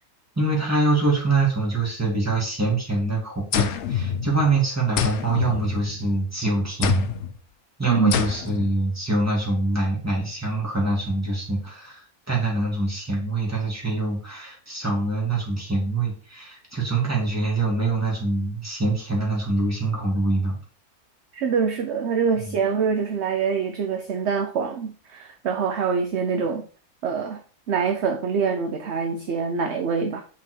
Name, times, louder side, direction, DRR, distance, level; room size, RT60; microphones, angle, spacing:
voice 1, 0.4-7.1 7.8-20.6 22.5-22.6, right 2 dB, 10° right, 2.3 m, -24 dB
sound 1, 3.5-4.6 5.0-6.2 6.8-7.4 8.1-8.7, left 8 dB, 60° left, 0.8 m, -26 dB
voice 2, 21.3-26.7 27.0-27.4 27.7-30.2, right 6 dB, 55° right, 0.9 m, -25 dB
5.5 x 4.5 x 4.5 m
omnidirectional pair, 1.6 m